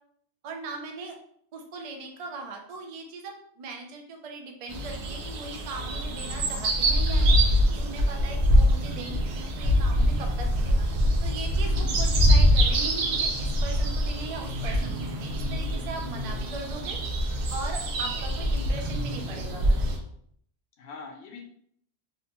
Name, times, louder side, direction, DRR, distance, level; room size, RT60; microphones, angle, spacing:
voice 1, 0.4-1.2 1.5-10.7 11.2-17.0 17.5-19.9, right 3 dB, 60° right, 2 dB, 0.4 m, -39 dB
sound 1, 4.7-20.0, equal, 75° right, 0.8 m, -24 dB
voice 2, 11.6-12.0 20.8-21.4, left 4 dB, 80° left, 2 dB, 0.9 m, -43 dB
2.7 x 2.0 x 2.8 m, 0.65 s
omnidirectional pair, 1.1 m